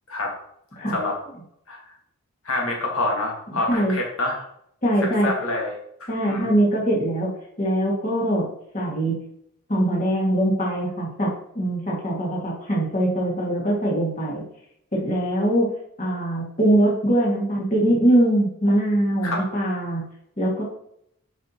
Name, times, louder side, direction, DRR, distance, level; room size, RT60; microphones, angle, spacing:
voice 1, 2.4-4.4 5.0-6.5 19.2-19.5, left 2 dB, 85° left, -1 dB, 1.7 m, -27 dB
voice 2, 4.8-5.3 6.1-9.2 9.7-14.4 14.9-15.7 16.0-20.1 20.4-20.6, right 1 dB, 35° left, -3 dB, 1.9 m, -22 dB
7.1 x 5.8 x 2.9 m, 0.73 s
head